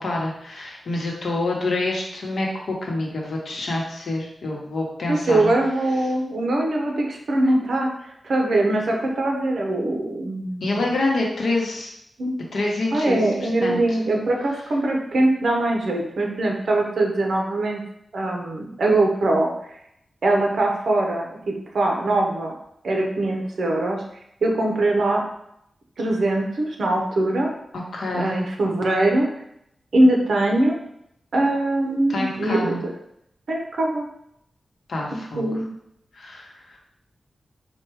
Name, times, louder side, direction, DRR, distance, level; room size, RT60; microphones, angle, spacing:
voice 1, 0.0-5.5 10.6-11.9 12.5-13.2 13.6-14.0 27.9-28.3 32.1-32.8 34.9-35.4 36.1-36.8, left 2 dB, 70° left, -1 dB, 1.0 m, -27 dB
voice 2, 5.1-7.9 8.2-10.6 12.2-12.3 12.9-17.8 18.1-19.5 20.2-22.5 22.8-24.0 24.4-25.3 26.0-27.5 28.1-29.3 29.9-30.8 31.3-32.9 33.5-34.1 35.4-35.7, right 2 dB, 60° right, 0 dB, 0.8 m, -22 dB
4.5 x 2.3 x 4.6 m, 0.77 s
wide cardioid pair, 175°, 0 cm